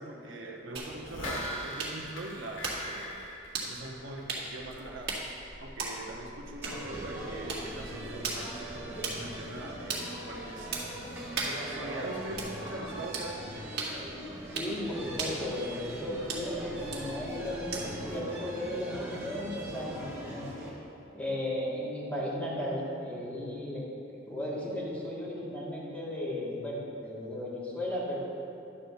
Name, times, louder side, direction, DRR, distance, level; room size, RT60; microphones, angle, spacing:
voice 1, 0.0-3.2 3.6-5.2 5.6-11.1 11.4-13.5, right 1 dB, 80° right, 0 dB, 1.1 m, -42 dB
sound 1, 0.8-18.1, right 3 dB, 60° right, 1.8 m, -40 dB
sound 2, 0.9-4.4 4.7-4.8, equal, 85° left, 1.7 m, -40 dB
sound 3, 6.6-20.7, right 1 dB, 15° right, 1.9 m, -41 dB
voice 2, 11.7-12.0 14.5-20.5 21.1-23.9 24.3-28.2, left 1 dB, 10° left, -8 dB, 2.2 m, -35 dB
11.0 x 4.3 x 7.0 m, 2.9 s
head